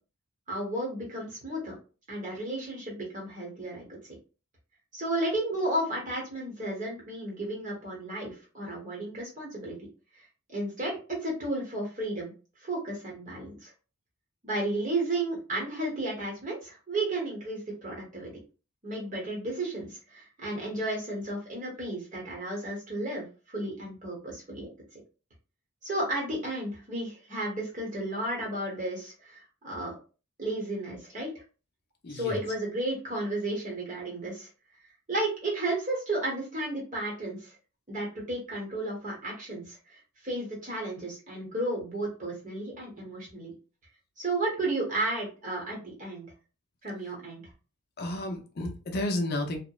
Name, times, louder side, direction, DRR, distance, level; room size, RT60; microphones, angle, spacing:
voice 1, 0.5-1.7 2.1-4.1 4.9-9.8 10.5-12.3 12.6-13.7 14.4-18.3 18.8-24.7 25.8-29.9 30.4-31.3 32.1-34.5 35.1-37.5 37.9-39.8 40.2-43.5 44.2-46.3 46.8-47.4, right 1 dB, 35° right, -2 dB, 0.9 m, -33 dB
voice 2, 32.0-32.4 48.0-49.6, left 1 dB, 45° left, 3 dB, 0.5 m, -31 dB
2.8 x 2.0 x 2.3 m, 0.34 s
head